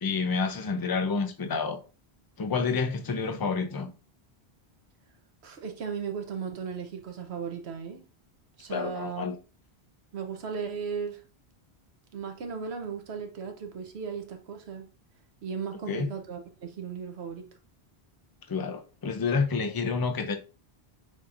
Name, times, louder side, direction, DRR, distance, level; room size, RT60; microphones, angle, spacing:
voice 1, 0.0-1.8 2.4-3.9 8.7-9.4 15.9-16.1 18.5-20.4, left 4 dB, 30° left, 0.4 m, -29 dB
voice 2, 5.4-8.0 8.6-9.3 10.1-11.2 12.1-14.8 15.4-17.5, right 6 dB, 85° right, 1.1 m, -36 dB
6.0 x 2.9 x 2.5 m
omnidirectional pair, 1.1 m